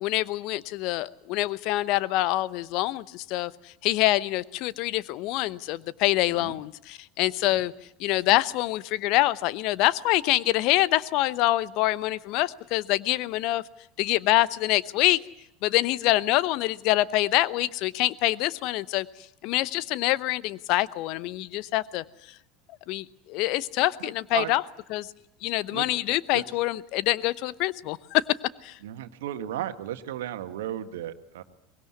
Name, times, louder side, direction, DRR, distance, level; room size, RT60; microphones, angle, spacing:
voice 1, 0.0-7.7 8.0-13.6 14.0-15.2 15.6-22.4 22.9-24.6 24.9-25.1 25.4-28.2 28.6-28.8, left 17 dB, 55° left, 18 dB, 0.9 m, -25 dB
voice 2, 28.8-31.4, right 12 dB, 70° right, 9 dB, 1.6 m, -34 dB
23.5 x 20.5 x 9.6 m, 0.79 s
hypercardioid pair, 75°, 0 cm